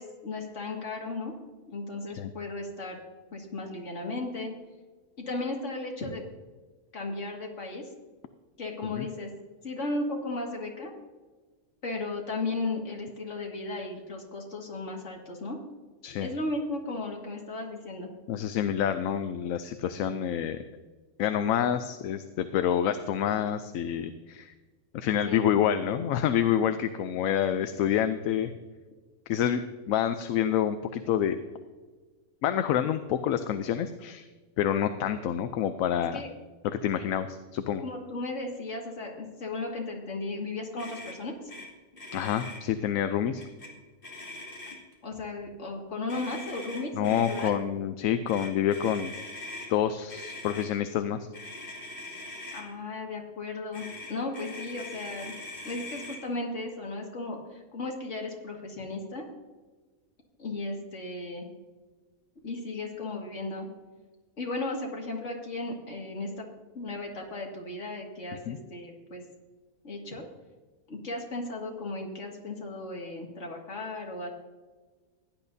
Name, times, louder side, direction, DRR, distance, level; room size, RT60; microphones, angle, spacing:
voice 1, 0.0-1.3 1.7-3.0 3.3-4.5 5.2-6.2 6.9-7.8 8.6-9.3 9.6-10.9 11.8-15.6 16.2-18.1 25.3-25.5 36.1-36.3 37.8-41.3 45.0-47.5 52.5-55.3 55.6-59.3 60.4-61.5 62.4-63.7 64.4-66.5 66.7-69.2 69.8-70.2 70.9-74.3, left 2 dB, 60° left, 0 dB, 2.3 m, -35 dB
voice 2, 18.3-20.6 21.2-24.5 24.9-28.5 29.3-31.4 32.4-34.3 34.6-36.2 36.6-37.8 42.1-43.4 46.9-49.1 49.7-51.2 68.5-68.6, left 9 dB, 80° left, 10 dB, 1.0 m, -27 dB
Motor vehicle (road), 40.8-41.2 41.5-41.7 41.9-42.6 43.4-43.7 44.0-44.9 46.1-47.5 48.3-49.7 50.1-50.7 51.3-52.6 53.7-56.2, left 2 dB, 40° left, 2.4 m, -42 dB
16.5 x 10.5 x 2.7 m, 1.3 s
omnidirectional pair, 1.4 m